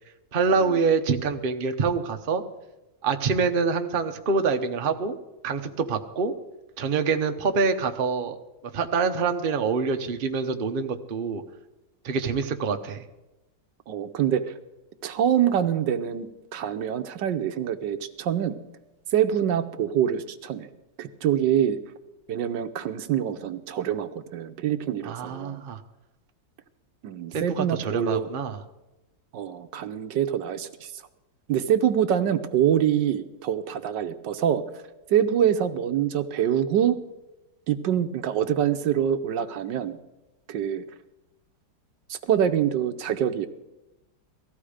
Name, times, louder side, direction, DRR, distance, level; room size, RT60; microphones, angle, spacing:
voice 1, 0.3-2.4 3.0-5.2 5.4-6.3 6.8-8.4 8.7-11.4 12.0-13.0 25.0-25.8 27.3-28.6, right 5 dB, 40° right, 6 dB, 0.9 m, -25 dB
voice 2, 13.9-14.4 15.0-18.5 19.1-20.7 21.0-21.8 22.3-25.6 27.0-28.3 29.3-30.9 31.5-34.6 35.1-37.0 37.7-40.0 40.5-40.8 42.1-43.5, right 9 dB, 80° right, 9 dB, 1.5 m, -25 dB
18.5 x 14.5 x 5.0 m, 0.99 s
omnidirectional pair, 1.9 m